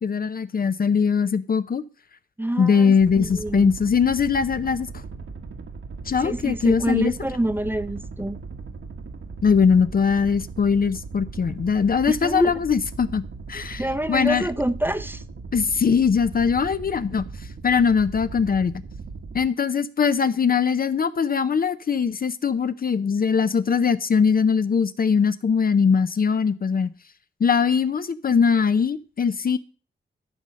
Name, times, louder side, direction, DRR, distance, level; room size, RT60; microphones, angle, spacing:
voice 1, 0.0-1.8 2.6-4.9 6.1-7.1 9.4-13.2 13.5-14.5 15.5-18.8 19.3-26.9 27.4-29.6, left 6 dB, 45° left, 0.5 m, -21 dB
voice 2, 2.4-3.7 6.2-8.4 12.1-12.5 13.8-15.2, right 1 dB, 10° right, 0.7 m, -27 dB
sound 1, 3.0-19.5, right 4 dB, 80° right, 1.5 m, -38 dB
13.5 x 5.5 x 6.3 m
wide cardioid pair, 130°, 21 cm